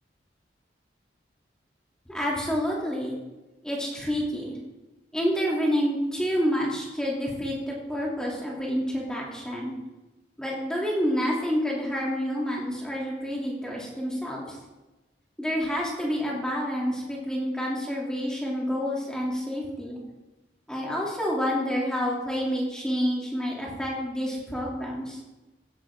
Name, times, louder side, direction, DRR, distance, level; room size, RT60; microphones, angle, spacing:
voice 1, 2.1-3.2 3.6-4.6 5.1-9.7 10.4-14.6 15.4-20.0 20.7-25.2, equal, 5° left, -4 dB, 2.8 m, -28 dB
16.0 x 9.9 x 3.7 m, 1.1 s
head